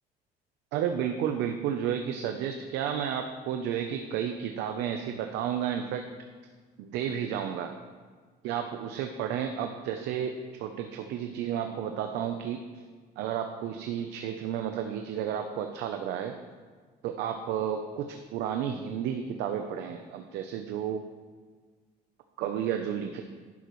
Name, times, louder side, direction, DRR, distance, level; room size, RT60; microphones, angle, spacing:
voice 1, 0.7-6.0 6.8-7.7 8.4-10.3 10.6-12.6 13.2-16.3 17.0-21.0 22.4-23.2, right 9 dB, 90° right, 5 dB, 0.8 m, -32 dB
11.5 x 11.0 x 3.2 m, 1.5 s
cardioid pair, 110°, 17 cm